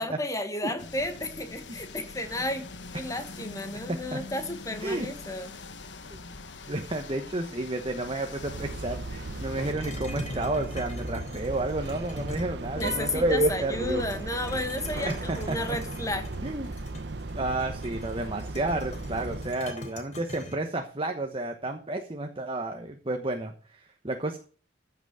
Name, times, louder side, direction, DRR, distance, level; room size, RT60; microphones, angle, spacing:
voice 1, 0.0-2.7 3.0-5.5 12.7-16.3, left 1 dB, 20° left, 1.5 m, -32 dB
sound 1, 0.8-9.7, left 3 dB, 85° left, 1.2 m, -43 dB
voice 2, 6.7-14.1 15.0-15.8 16.4-16.7 17.3-24.4, right 2 dB, 30° right, 1.2 m, -31 dB
sound 2, 8.3-19.6, right 2 dB, 70° right, 0.8 m, -37 dB
sound 3, 9.6-13.3 13.9-20.6, left 1 dB, 40° left, 3.8 m, -42 dB
15.0 x 6.1 x 6.7 m
head